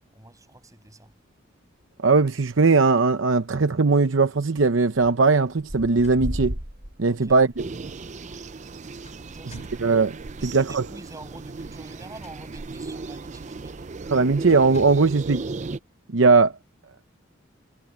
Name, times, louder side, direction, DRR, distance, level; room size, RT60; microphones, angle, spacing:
voice 1, 0.1-1.1 7.1-7.4 9.3-9.9 10.3-13.9, right 2 dB, 15° right, 7.1 m, -47 dB
voice 2, 2.0-6.5 7.0-7.5 9.8-10.1 10.4-10.8 14.1-15.4 16.1-16.5, right 4 dB, 75° right, 0.8 m, -19 dB
sound 1, 2.1-2.5 2.9-3.2 3.4-3.5 3.7-3.8 4.6-5.1 5.4-10.5 10.9-11.0 11.2-11.7 12.4-13.1, equal, 55° right, 5.3 m, -37 dB
sound 2, 5.8-6.6 7.0-7.1 8.6-9.9 11.9-12.9 13.3-13.6 13.9-14.1 14.5-15.2, left 1 dB, 35° left, 6.6 m, -49 dB
sound 3, 7.6-15.8, right 3 dB, 35° right, 0.5 m, -36 dB
head